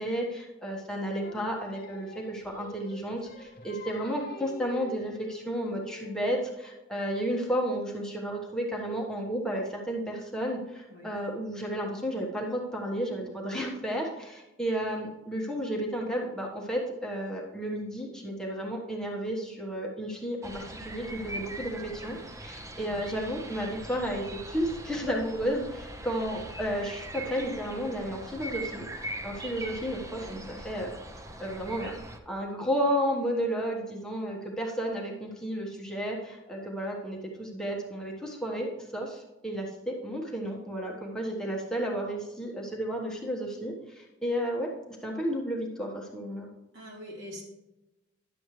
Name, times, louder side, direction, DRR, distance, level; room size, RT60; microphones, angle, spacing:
voice 1, 0.0-30.9 31.4-32.0 32.2-44.7 45.0-46.5, equal, 5° left, -2 dB, 1.3 m, -32 dB
Singing, 1.2-6.4, left 2 dB, 55° left, 0.9 m, -46 dB
sound 1, 20.4-32.2, right 1 dB, 15° right, 0.7 m, -41 dB
voice 2, 46.7-47.4, equal, 75° right, -1 dB, 2.7 m, -44 dB
11.0 x 7.6 x 3.2 m, 1.0 s
head